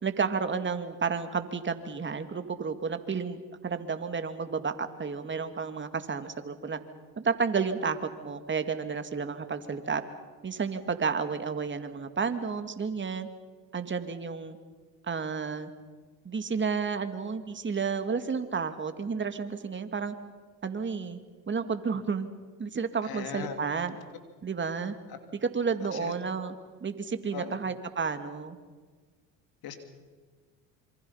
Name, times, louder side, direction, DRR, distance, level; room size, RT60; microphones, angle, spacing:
voice 1, 0.0-6.8 7.2-8.0 8.2-10.0 10.4-13.3 13.7-14.6 15.1-15.7 16.2-20.1 20.6-21.2 21.5-22.3 22.6-24.0 24.4-24.9 25.4-26.5 26.8-28.6, right 5 dB, 25° right, 8 dB, 2.2 m, -31 dB
voice 2, 23.0-23.5 25.9-26.1 27.3-27.6 29.6-29.8, left 8 dB, 55° left, 7 dB, 3.0 m, -38 dB
26.5 x 24.5 x 5.7 m, 1.5 s
hypercardioid pair, 75°, 43 cm